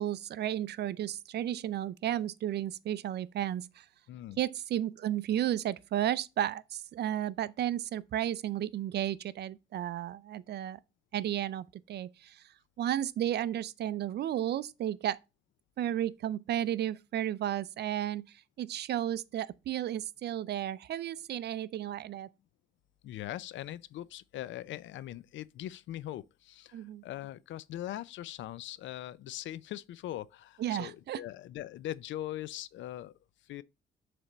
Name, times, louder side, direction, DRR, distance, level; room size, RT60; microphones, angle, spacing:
voice 1, 0.0-3.8 4.4-10.8 11.1-12.4 12.8-15.2 15.8-22.3 26.7-27.0 30.6-31.2, right 11 dB, 55° right, 0.4 m, -33 dB
voice 2, 4.1-4.4 23.0-33.1 33.4-33.6, left 13 dB, 70° left, 0.4 m, -41 dB
7.2 x 3.4 x 3.8 m
cardioid pair, 90°, 20 cm